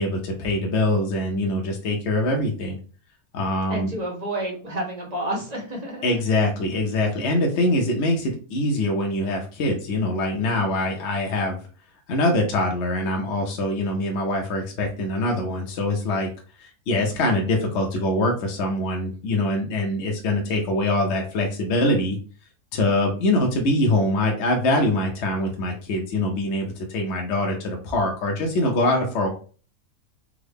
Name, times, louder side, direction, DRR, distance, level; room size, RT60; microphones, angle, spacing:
voice 1, 0.0-2.8 3.3-3.9 6.0-11.6 12.1-16.3 16.6-22.2 22.7-29.3, left 1 dB, 55° left, 1 dB, 0.8 m, -23 dB
voice 2, 3.7-6.2, right 1 dB, 35° right, -1 dB, 0.7 m, -30 dB
3.7 x 2.0 x 3.4 m, 0.38 s
omnidirectional pair, 1.6 m